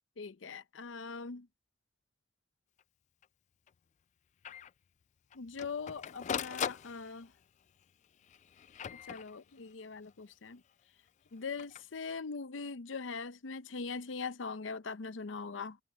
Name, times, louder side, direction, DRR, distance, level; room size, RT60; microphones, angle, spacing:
voice 1, 0.2-1.5 5.3-7.3 8.9-10.6 11.3-15.8, left 4 dB, 85° left, 0.7 m, -41 dB
Printer, 2.8-2.9 3.2-3.3 3.7-3.8 4.4-4.7 5.3-7.4 8.2-9.7 11.4-11.8, left 8 dB, 40° left, 0.3 m, -40 dB
head